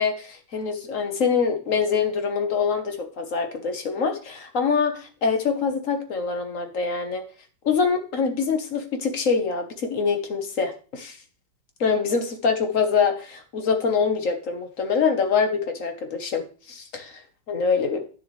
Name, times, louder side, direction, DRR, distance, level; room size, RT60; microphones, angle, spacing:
voice 1, 0.0-7.2 7.6-11.2 11.8-17.2 17.5-18.0, left 5 dB, 45° left, 6 dB, 1.3 m, -24 dB
9.2 x 7.0 x 3.2 m, 0.38 s
omnidirectional pair, 2.2 m